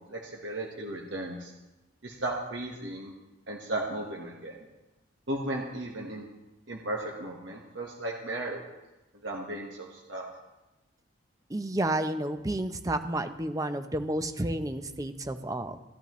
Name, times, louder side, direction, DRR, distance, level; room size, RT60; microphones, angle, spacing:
voice 1, 0.0-1.5 2.0-3.1 3.5-4.6 5.3-6.2 6.7-8.6 9.2-10.2, right 1 dB, 70° right, -1 dB, 1.4 m, -35 dB
voice 2, 11.5-15.8, right 1 dB, 20° right, 8 dB, 0.6 m, -31 dB
15.0 x 11.0 x 3.1 m, 1.0 s
head